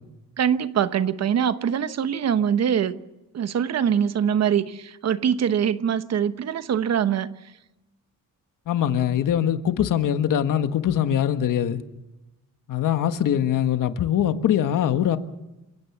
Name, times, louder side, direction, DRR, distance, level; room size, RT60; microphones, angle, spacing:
voice 1, 0.4-3.0 3.3-7.3, right 8 dB, 50° right, 1.0 m, -23 dB
voice 2, 8.7-11.8 12.7-15.2, left 10 dB, 70° left, 1.6 m, -22 dB
29.0 x 16.5 x 7.3 m
cardioid pair, 160°, 33 cm